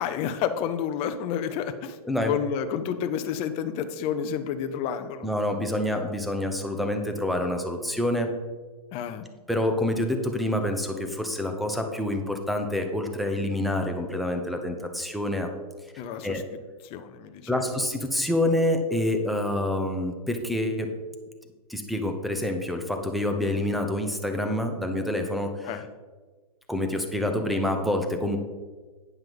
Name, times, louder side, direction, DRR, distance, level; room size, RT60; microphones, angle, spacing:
voice 1, 0.0-2.0 2.2-5.3 8.9-9.2 16.0-16.4 16.8-17.6 25.6-25.8, left 8 dB, 30° left, 9 dB, 0.7 m, -30 dB
voice 2, 5.2-8.3 9.5-15.5 16.2-16.4 17.5-20.9 21.7-25.8 26.7-28.4, left 1 dB, ahead, 5 dB, 0.9 m, -27 dB
9.4 x 5.6 x 5.4 m, 1.4 s
hypercardioid pair, 130°, 20 cm